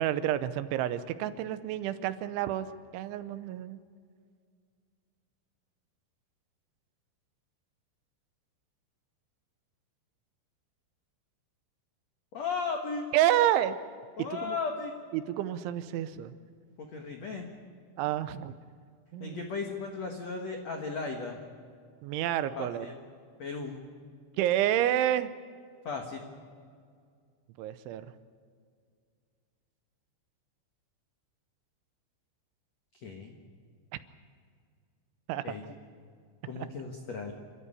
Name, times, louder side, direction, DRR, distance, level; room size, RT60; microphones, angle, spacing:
voice 1, 0.0-2.7 2.9-3.8 13.1-13.8 14.4-14.6 15.1-16.3 18.0-18.6 19.1-19.4 22.0-22.9 24.4-25.3 27.6-28.1 35.3-35.4, right 12 dB, 80° right, 12 dB, 3.1 m, -29 dB
voice 2, 12.3-13.1 14.2-14.9 16.8-17.5 19.2-21.4 22.6-23.0 23.4-23.8 25.8-26.3 32.9-33.4 35.4-35.6 36.4-37.3, left 4 dB, 75° left, 3 dB, 1.5 m, -36 dB
29.0 x 13.0 x 9.9 m, 2.1 s
omnidirectional pair, 5.7 m